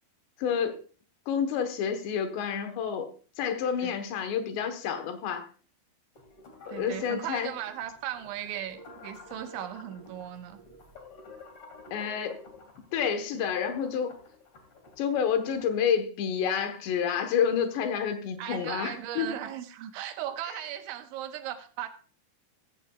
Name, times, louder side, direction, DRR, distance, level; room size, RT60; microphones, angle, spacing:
voice 1, 0.4-0.8 1.3-3.1 3.4-5.5 6.7-7.5 11.9-12.4 12.9-14.2 15.0-19.3, left 7 dB, 70° left, 7 dB, 3.3 m, -29 dB
sound 1, 6.1-15.7, left 2 dB, 40° left, 2.3 m, -51 dB
voice 2, 6.7-10.6 18.4-21.9, right 11 dB, 85° right, 7 dB, 3.5 m, -37 dB
15.5 x 14.5 x 2.4 m, 0.39 s
omnidirectional pair, 5.4 m